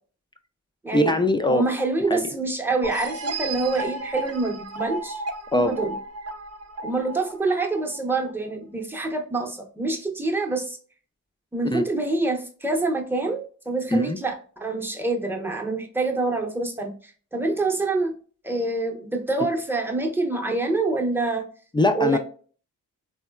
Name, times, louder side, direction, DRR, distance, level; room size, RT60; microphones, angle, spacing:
voice 1, 0.9-1.6 2.1-2.3 5.5-5.7 11.7-11.8 13.9-14.2 21.7-22.2, left 2 dB, 15° left, 0.3 m, -21 dB
voice 2, 1.5-5.2 5.5-6.0 6.8-10.8 11.5-18.1 18.4-21.5 21.9-22.2, right 3 dB, 5° right, 0.7 m, -26 dB
sound 1, 2.8-8.3, right 2 dB, 50° right, 0.6 m, -34 dB
3.7 x 2.1 x 2.2 m
cardioid pair, 60°, 33 cm